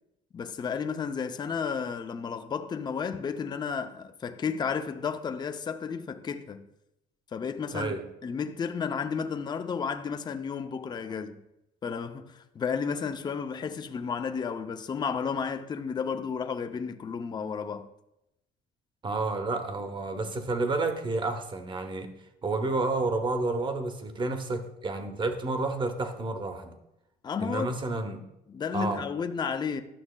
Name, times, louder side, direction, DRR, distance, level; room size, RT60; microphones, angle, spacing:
voice 1, 0.3-6.7 7.3-7.9 8.2-11.4 11.8-17.9 27.2-27.8 28.5-29.8, left 6 dB, 25° left, 0.4 m, -32 dB
voice 2, 7.7-8.0 19.0-22.1 22.4-26.7 27.4-28.2 28.7-29.1, right 3 dB, 30° right, 0.8 m, -30 dB
11.5 x 6.2 x 2.2 m
cardioid pair, 110°, 17 cm